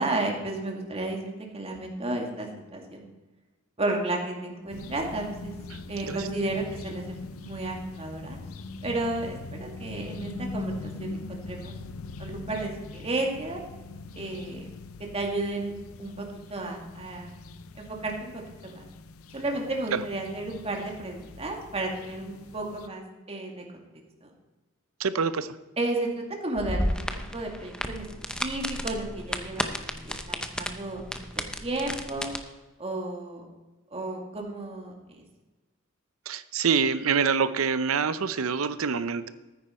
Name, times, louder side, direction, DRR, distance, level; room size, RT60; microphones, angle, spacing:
voice 1, 0.0-3.1 3.8-5.5 5.9-8.4 8.8-11.7 12.2-13.6 14.2-14.7 15.1-15.7 16.0-17.3 17.8-18.9 19.3-23.0 23.3-23.9 24.2-24.3 25.8-27.1 27.3-28.1 28.4-31.3 31.6-32.3 32.8-33.5 33.9-35.2, right 2 dB, 30° right, 1 dB, 2.1 m, -33 dB
Garden Village Ambience, 4.7-22.9, left 2 dB, 75° left, 0.6 m, -42 dB
voice 2, 5.7-6.2 19.9-20.0 25.0-25.6 36.3-39.3, right 6 dB, 75° right, 14 dB, 0.7 m, -26 dB
sound 1, 26.6-32.4, left 1 dB, 5° left, 0.7 m, -33 dB
14.0 x 9.5 x 4.3 m, 1.2 s
head